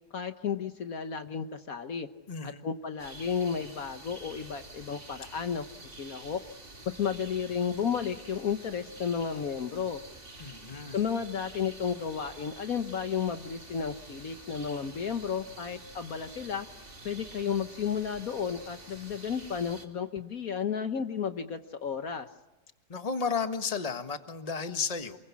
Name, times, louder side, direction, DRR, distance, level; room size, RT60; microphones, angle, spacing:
voice 1, 0.1-2.1 2.4-5.7 6.0-6.4 6.9-10.0 10.9-16.7 17.0-22.3, left 7 dB, 60° left, 8 dB, 1.4 m, -32 dB
voice 2, 2.3-2.6 10.4-11.0 22.9-25.2, left 5 dB, 25° left, 8 dB, 1.4 m, -33 dB
sound 1, 3.0-19.9, right 2 dB, 30° right, 3.0 m, -48 dB
28.0 x 22.5 x 8.5 m, 1.1 s
omnidirectional pair, 1.8 m